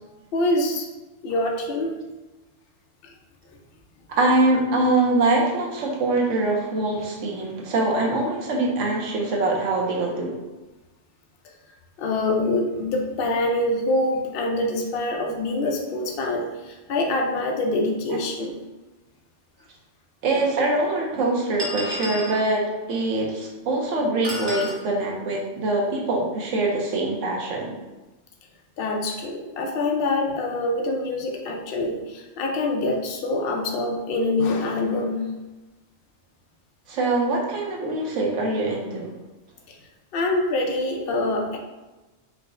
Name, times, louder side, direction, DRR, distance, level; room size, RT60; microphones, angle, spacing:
voice 1, 0.3-0.9 1.2-1.9 3.0-3.1 12.0-18.6 28.8-35.3 39.7-39.8 40.1-41.6, left 2 dB, 60° left, 1 dB, 0.7 m, -25 dB
voice 2, 4.1-10.4 20.2-27.8 36.9-39.1, right 2 dB, 75° right, -2 dB, 1.0 m, -23 dB
sound 1, 19.6-19.7 20.6-20.7 21.6-22.4 24.2-24.8, left 1 dB, 25° right, 0.6 m, -31 dB
4.6 x 2.0 x 2.5 m, 1.1 s
omnidirectional pair, 1.3 m